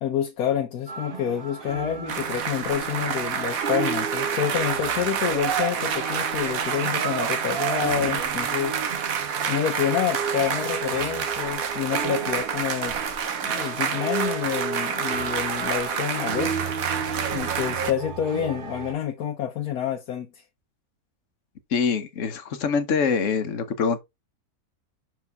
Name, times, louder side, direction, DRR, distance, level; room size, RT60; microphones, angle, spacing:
voice 1, 0.0-9.0 9.5-13.0 13.4-16.5 17.3-20.4, left 9 dB, 85° left, 1.4 m, -28 dB
sound 1, 0.9-18.9, right 5 dB, 40° right, 1.1 m, -34 dB
sound 2, 2.1-17.9, right 7 dB, 70° right, 1.4 m, -28 dB
voice 2, 21.7-24.0, left 5 dB, 60° left, 1.3 m, -24 dB
6.1 x 4.6 x 3.4 m
omnidirectional pair, 1.6 m